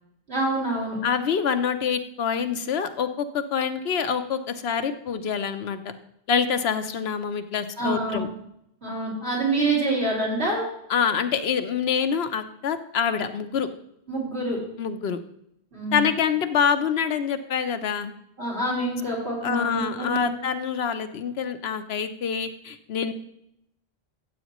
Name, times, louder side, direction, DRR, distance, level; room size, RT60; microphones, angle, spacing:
voice 1, 0.3-1.0 7.8-8.2 8.8-10.7 14.1-14.6 15.7-16.1 18.4-20.3, right 2 dB, 80° right, -4 dB, 4.1 m, -26 dB
voice 2, 1.0-5.8 6.3-8.3 10.9-13.7 14.8-15.2 15.9-18.1 19.4-23.1, left 7 dB, 75° left, 9 dB, 1.0 m, -26 dB
14.5 x 8.0 x 3.0 m, 0.76 s
omnidirectional pair, 1.1 m